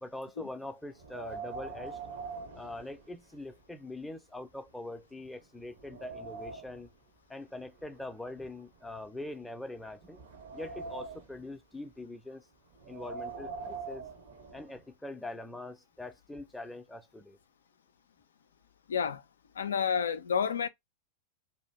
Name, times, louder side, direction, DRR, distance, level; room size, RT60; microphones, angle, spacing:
voice 1, 0.0-2.0 2.5-6.9 7.3-10.2 10.5-12.5 12.9-14.0 14.5-17.4, left 2 dB, 5° left, 0.5 m, -43 dB
Wind, 0.9-3.6 3.9-4.0 4.7-4.8 5.3-6.9 7.7-9.3 9.8-11.5 12.7-14.8, right 4 dB, 60° right, 0.9 m, -44 dB
voice 2, 18.9-19.2 19.6-20.7, left 7 dB, 65° left, 0.3 m, -29 dB
2.5 x 2.1 x 3.2 m
figure-of-eight pair, 90°, 0 cm